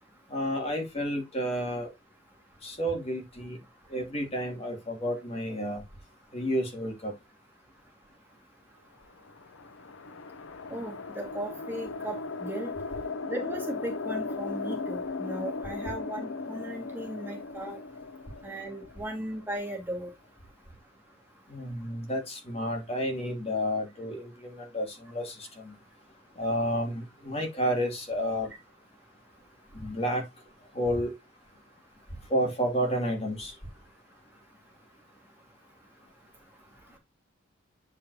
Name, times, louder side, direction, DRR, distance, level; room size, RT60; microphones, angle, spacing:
voice 1, 0.3-1.9 2.6-3.6 3.9-5.8 6.3-7.1 21.5-25.7 26.4-28.5 29.7-30.2 30.7-31.1 32.3-33.5, equal, 30° left, 2.6 m, -31 dB
sound 1, 9.2-19.6, left 3 dB, 85° left, 0.7 m, -37 dB
voice 2, 10.7-12.7 13.3-17.8 18.4-20.1, right 1 dB, 10° right, 2.0 m, -37 dB
9.5 x 4.8 x 2.8 m
head